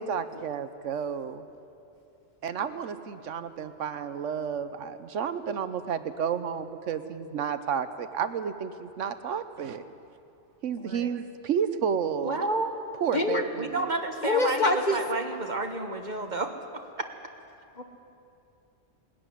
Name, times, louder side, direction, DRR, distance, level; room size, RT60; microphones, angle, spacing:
voice 1, 0.0-1.5 2.4-9.8 10.6-12.4 13.0-13.9, right 7 dB, 80° right, 11 dB, 1.1 m, -31 dB
voice 2, 10.8-11.1 13.1-13.4 14.2-15.0 17.8-17.9, left 2 dB, 40° left, 5 dB, 1.5 m, -25 dB
voice 3, 12.2-12.7 13.6-16.8, right 2 dB, 40° right, 5 dB, 1.4 m, -31 dB
19.5 x 14.0 x 9.8 m, 2.7 s
omnidirectional pair, 1.3 m